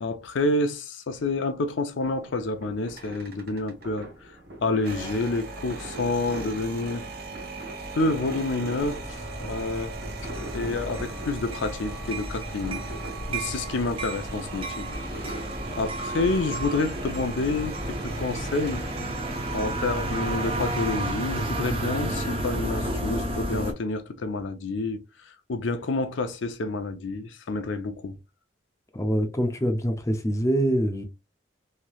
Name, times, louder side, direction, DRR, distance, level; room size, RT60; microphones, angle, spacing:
voice 1, 0.0-4.1 4.6-7.0 7.9-10.0 10.5-12.8 13.3-14.9 15.2-15.5 15.8-18.8 19.5-25.0 25.5-28.2, left 3 dB, 80° left, 0.5 m, -28 dB
sound 1, 2.0-15.8, right 1 dB, 70° right, 1.4 m, -43 dB
sound 2, 2.9-4.0 4.7-21.1, right 2 dB, 55° right, 0.9 m, -40 dB
sound 3, 8.8-23.7, right 1 dB, 30° right, 0.7 m, -32 dB
voice 2, 28.9-31.0, equal, 15° left, 0.4 m, -24 dB
3.1 x 2.8 x 2.3 m
head